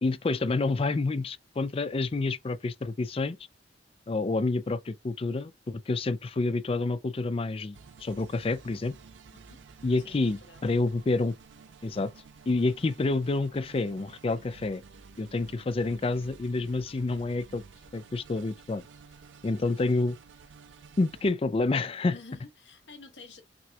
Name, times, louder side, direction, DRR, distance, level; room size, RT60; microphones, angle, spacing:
voice 1, 0.0-3.4 4.1-8.9 9.8-11.4 11.8-12.1 12.5-14.8 15.2-17.6 17.9-18.8 19.4-20.2 21.0-22.2, left 3 dB, 30° left, 0.4 m, -28 dB
sound 1, 7.7-21.3, right 5 dB, 80° right, 0.5 m, -52 dB
voice 2, 10.0-10.6 19.5-19.6 22.1-23.4, left 3 dB, 75° left, 1.3 m, -49 dB
6.0 x 2.3 x 2.8 m
head